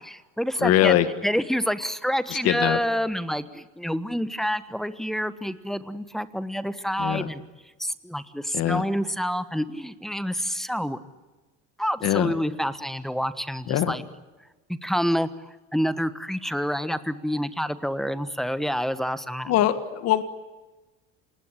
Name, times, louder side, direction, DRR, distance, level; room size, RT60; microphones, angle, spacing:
voice 1, 0.0-7.4 7.8-11.0 11.8-14.0 14.7-19.5, equal, ahead, 12 dB, 1.3 m, -28 dB
voice 2, 0.6-1.1 2.4-2.8 7.0-7.3 8.5-8.8 12.0-12.3 13.7-13.9 19.5-20.2, left 12 dB, 60° left, 10 dB, 1.8 m, -22 dB
28.0 x 20.0 x 9.9 m, 1.2 s
cardioid pair, 125°, 29 cm